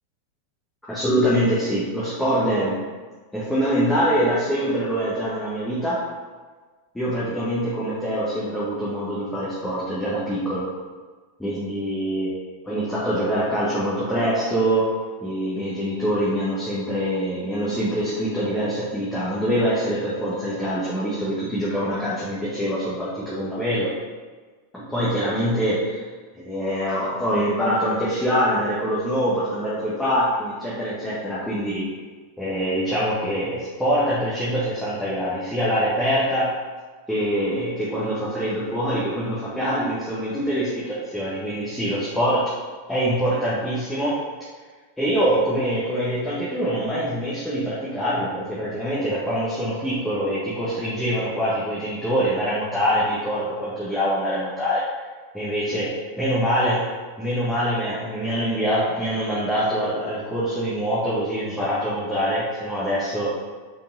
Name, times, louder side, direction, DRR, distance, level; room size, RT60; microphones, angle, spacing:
voice 1, 0.9-2.8 3.3-6.0 6.9-10.6 11.4-12.3 12.6-14.9 15.2-23.9 24.7-26.0 26.4-31.8 32.4-36.5 37.1-42.4 42.9-44.1 45.0-54.8 55.3-55.9 56.2-56.8 57.2-63.3, equal, 5° left, -9 dB, 1.6 m, -24 dB
5.4 x 5.2 x 4.0 m, 1.4 s
figure-of-eight pair, 90°, 0 cm